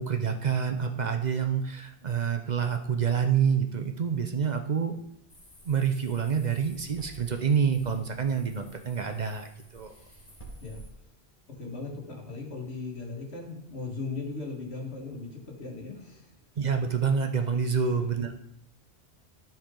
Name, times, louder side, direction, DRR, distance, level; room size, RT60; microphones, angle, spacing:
voice 1, 0.0-5.0 5.6-9.5 9.7-9.9 16.6-18.4, right 6 dB, 50° right, 6 dB, 0.7 m, -27 dB
sound 1, 5.3-10.9, right 1 dB, 35° left, 1.7 m, -51 dB
voice 2, 11.6-16.3 17.9-18.1, left 3 dB, 80° left, -1 dB, 2.0 m, -38 dB
13.0 x 4.4 x 3.8 m, 0.76 s
omnidirectional pair, 1.1 m